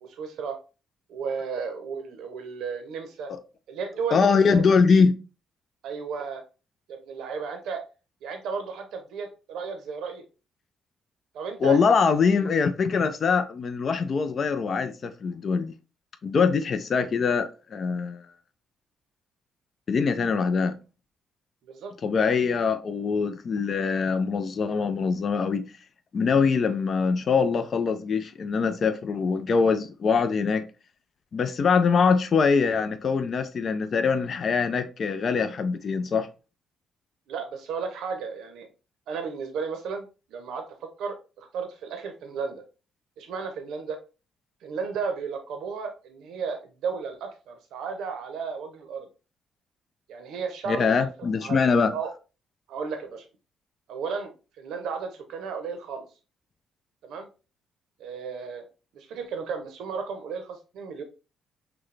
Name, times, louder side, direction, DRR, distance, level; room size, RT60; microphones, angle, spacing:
voice 1, 0.0-0.6 1.1-3.3 3.7-4.6 5.8-6.4 6.9-7.8 8.2-10.2 11.3-11.8 12.4-12.5 21.6-21.9 37.3-38.7 39.1-40.6 41.0-42.6 43.2-44.0 44.6-49.1 50.1-51.0 51.4-51.6 51.9-52.1 52.7-53.3 53.9-54.3 54.6-56.1 57.0-57.3 58.0-58.7 58.9-61.0, right 5 dB, 80° right, 0.7 m, -34 dB
voice 2, 4.1-5.2 11.6-15.7 16.2-18.2 19.9-20.8 22.0-25.7 26.1-30.7 31.3-36.3 50.7-51.9, left 5 dB, 50° left, 0.5 m, -23 dB
5.9 x 2.2 x 3.2 m
cardioid pair, 90°, 0 cm